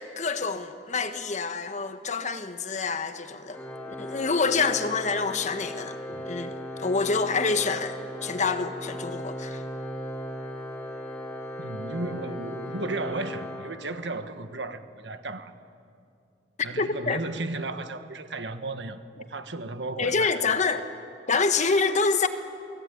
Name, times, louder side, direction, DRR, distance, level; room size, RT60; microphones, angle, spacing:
voice 1, 0.0-6.0 6.2-9.6 16.8-17.2 20.0-20.9 21.3-22.3, left 4 dB, 40° left, 1.3 m, -27 dB
Organ, 3.5-14.3, equal, 10° left, 3.4 m, -37 dB
voice 2, 11.6-15.5 16.6-20.3, right 2 dB, 85° right, 1.4 m, -34 dB
28.5 x 18.5 x 9.3 m
head